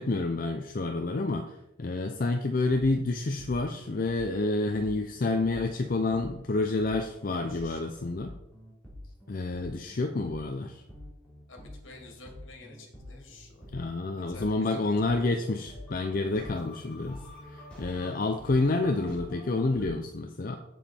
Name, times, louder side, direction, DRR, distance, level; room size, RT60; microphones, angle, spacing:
voice 1, 0.0-8.3 9.3-10.8 13.7-20.6, left 2 dB, 45° left, 5 dB, 0.5 m, -29 dB
sound 1, 2.7-19.9, left 1 dB, 5° left, 3.0 m, -47 dB
voice 2, 7.2-8.1 11.5-13.7 14.3-15.6, left 2 dB, 80° left, 2 dB, 2.1 m, -51 dB
7.3 x 7.2 x 4.3 m, 0.85 s
head